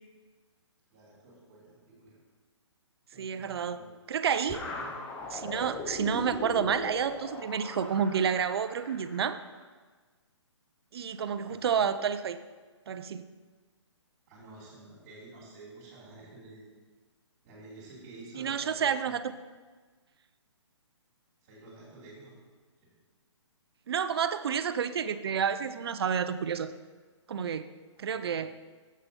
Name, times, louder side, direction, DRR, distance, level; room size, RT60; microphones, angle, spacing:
voice 1, 0.9-2.2 3.1-3.9 4.7-4.9 5.6-5.7 11.4-11.8 14.3-16.7 17.4-19.2 21.4-22.3 22.8-22.9 28.0-28.5, right 2 dB, 30° right, -8 dB, 2.9 m, -50 dB
voice 2, 3.2-4.7 5.3-9.4 10.9-12.4 12.9-13.2 18.3-19.2 23.9-26.7 27.3-27.7 28.0-28.5, right 7 dB, 55° right, 11 dB, 0.5 m, -30 dB
sound 1, 4.5-9.5, left 2 dB, 10° left, 0.4 m, -40 dB
7.6 x 6.5 x 5.4 m, 1.4 s
hypercardioid pair, 155°, 15 cm